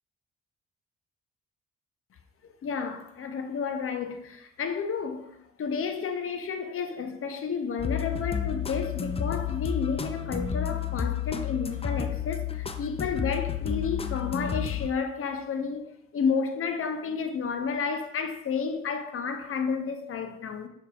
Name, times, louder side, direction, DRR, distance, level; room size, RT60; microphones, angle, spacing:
voice 1, 2.4-5.3 5.6-15.9 16.1-20.7, left 5 dB, 45° left, 0.7 m, -31 dB
sound 1, 7.8-14.9, left 8 dB, 20° left, 0.4 m, -31 dB
6.2 x 3.5 x 2.4 m
hypercardioid pair, 45°, 31 cm